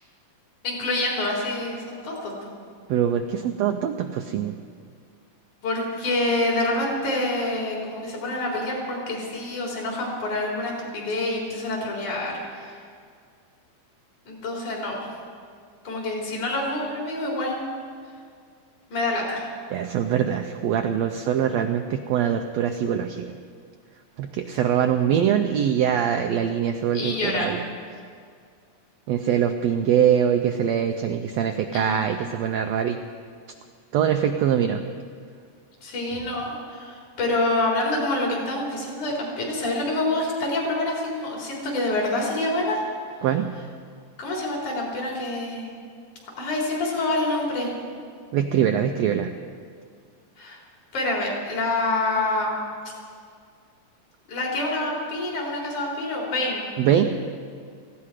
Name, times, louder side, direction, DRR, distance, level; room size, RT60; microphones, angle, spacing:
voice 1, 0.6-2.5 5.6-12.8 14.3-15.1 15.8-17.7 18.9-19.5 26.9-27.6 31.7-32.3 35.8-42.8 44.2-45.7 46.4-47.7 50.4-50.6 50.9-52.6 54.3-56.6, left 2 dB, 65° left, -3 dB, 5.0 m, -27 dB
voice 2, 2.9-4.5 19.7-23.3 24.2-27.6 29.1-33.0 33.9-34.8 43.2-43.5 48.3-49.3 56.8-57.2, right 9 dB, 85° right, 6 dB, 1.5 m, -23 dB
18.5 x 15.5 x 4.9 m, 2.2 s
omnidirectional pair, 3.7 m